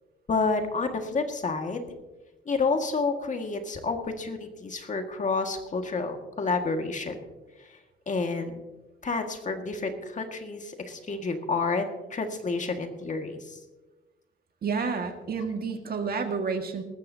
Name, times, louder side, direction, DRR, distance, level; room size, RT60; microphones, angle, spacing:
voice 1, 0.3-1.9 2.5-7.2 8.1-8.6 9.0-13.6, left 4 dB, 40° left, 5 dB, 1.8 m, -29 dB
voice 2, 14.6-16.8, right 5 dB, 50° right, 5 dB, 1.8 m, -30 dB
19.5 x 13.5 x 2.8 m, 1.1 s
cardioid pair, 90°, 20 cm